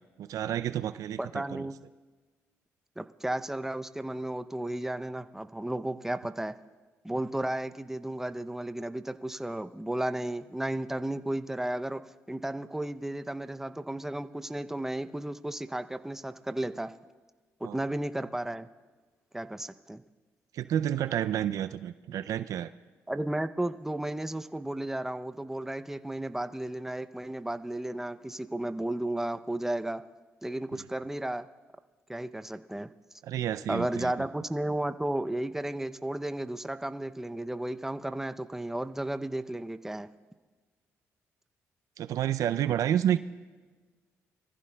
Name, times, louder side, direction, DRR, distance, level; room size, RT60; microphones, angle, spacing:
voice 1, 0.2-1.7 17.6-17.8 20.5-22.7 33.2-34.3 42.0-43.2, right 10 dB, 70° right, 13 dB, 0.4 m, -30 dB
voice 2, 1.2-1.8 3.0-6.5 7.0-12.0 12.3-16.9 17.6-18.7 19.3-20.0 23.1-30.0 30.4-31.5 32.1-32.9 33.7-40.1, right 1 dB, 5° right, 10 dB, 0.6 m, -33 dB
23.5 x 14.5 x 2.3 m, 1.4 s
supercardioid pair, 70°, 6 cm